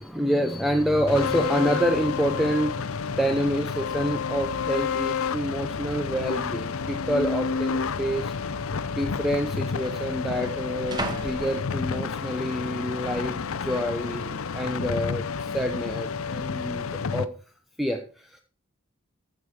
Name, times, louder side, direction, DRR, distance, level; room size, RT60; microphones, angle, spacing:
voice 1, 0.0-8.4 8.8-17.3 17.8-18.4, equal, ahead, 5 dB, 0.7 m, -27 dB
sound 1, 0.7-15.9, right 2 dB, 55° right, 1.4 m, -49 dB
sound 2, 1.1-17.2, left 5 dB, 80° left, 0.6 m, -30 dB
sound 3, 3.9-4.3 5.0-5.1 5.8-6.3 6.6-6.7 7.6-7.8 8.8-8.9 9.1-12.3 12.8-13.2, right 2 dB, 20° right, 1.3 m, -39 dB
14.5 x 6.5 x 4.8 m, 0.40 s
head